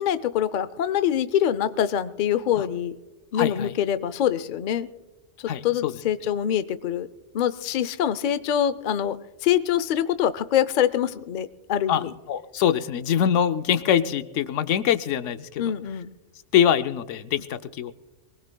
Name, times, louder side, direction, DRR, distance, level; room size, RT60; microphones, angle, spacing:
voice 1, 0.0-2.9 3.3-4.9 5.4-7.1 7.3-12.1 15.6-16.1, left 10 dB, 55° left, 14 dB, 0.6 m, -25 dB
voice 2, 3.3-3.7 5.5-5.9 11.9-15.7 16.5-17.9, left 9 dB, 85° left, 11 dB, 1.0 m, -24 dB
23.0 x 19.5 x 2.2 m, 1.1 s
omnidirectional pair, 1.2 m